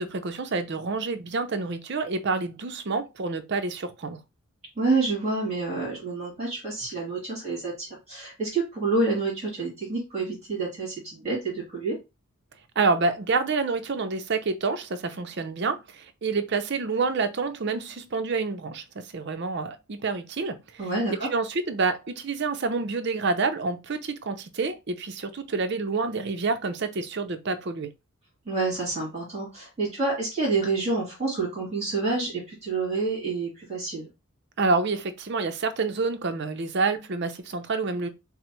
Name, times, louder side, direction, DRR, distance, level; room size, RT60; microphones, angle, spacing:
voice 1, 0.0-4.2 12.8-20.5 21.1-27.9 34.6-38.1, right 4 dB, 50° right, 0.5 m, -28 dB
voice 2, 4.8-12.0 20.8-21.3 28.5-34.1, right 3 dB, 30° right, 2.3 m, -28 dB
6.0 x 2.0 x 3.0 m
head